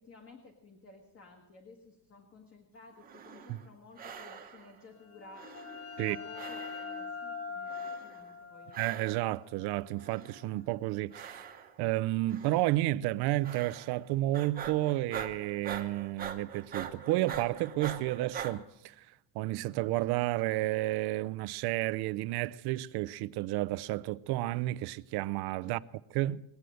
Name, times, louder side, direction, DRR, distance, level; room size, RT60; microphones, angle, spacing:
voice 1, 0.0-5.5 6.0-8.8 25.6-25.8, left 3 dB, 30° left, 1.5 m, -54 dB
sound 1, 3.0-3.7 4.0-4.8 5.3-6.1 6.3-7.1 7.7-8.3 8.7-9.4 10.0-10.6 11.1-11.9 12.3-12.8 13.4-14.1 14.3-18.5, right 7 dB, 20° right, 1.0 m, -43 dB
sound 2, 5.0-10.5, left 5 dB, 90° left, 4.4 m, -43 dB
voice 2, 8.8-11.5 11.8-19.1 19.3-25.8 26.1-26.4, right 17 dB, 65° right, 0.6 m, -31 dB
20.5 x 8.2 x 7.7 m
cardioid pair, 175°, 43 cm